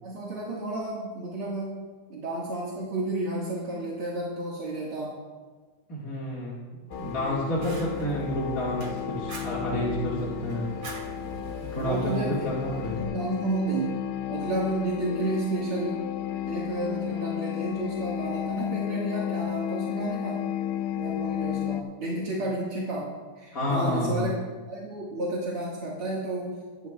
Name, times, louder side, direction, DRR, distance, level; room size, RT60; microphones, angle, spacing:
voice 1, 0.0-5.2 11.7-16.1 16.4-20.4 21.0-24.3 24.7-26.9, right 2 dB, 75° right, -5 dB, 2.7 m, -32 dB
voice 2, 5.9-6.6 6.8-10.7 11.7-13.1 23.5-24.3, left 1 dB, 40° left, -6 dB, 2.3 m, -29 dB
sound 1, 6.9-21.8, left 11 dB, 85° left, 1.6 m, -33 dB
Fire, 6.9-13.0, equal, 35° right, 1.5 m, -41 dB
21.0 x 12.0 x 2.4 m, 1.4 s
omnidirectional pair, 2.4 m